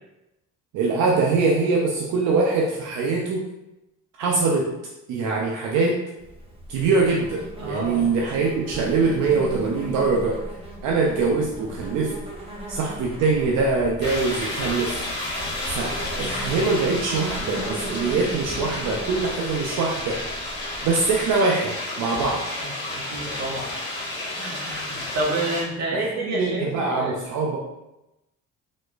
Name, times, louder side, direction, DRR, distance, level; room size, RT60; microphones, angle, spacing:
voice 1, 0.7-3.4 4.2-4.7 5.1-6.0 6.7-10.4 10.8-12.1 12.7-15.0 15.6-20.2 20.8-22.4 25.9-27.6, right 4 dB, 90° right, -2 dB, 0.6 m, -23 dB
Insect, 6.2-21.3, right 1 dB, 20° right, 0.9 m, -38 dB
voice 2, 7.6-8.1 22.6-23.7 24.3-27.2, right 1 dB, 60° right, -2 dB, 1.1 m, -29 dB
sound 1, 14.0-25.6, left 2 dB, 35° left, 1.5 m, -31 dB
4.1 x 2.9 x 2.4 m, 0.94 s
cardioid pair, 90°, 30 cm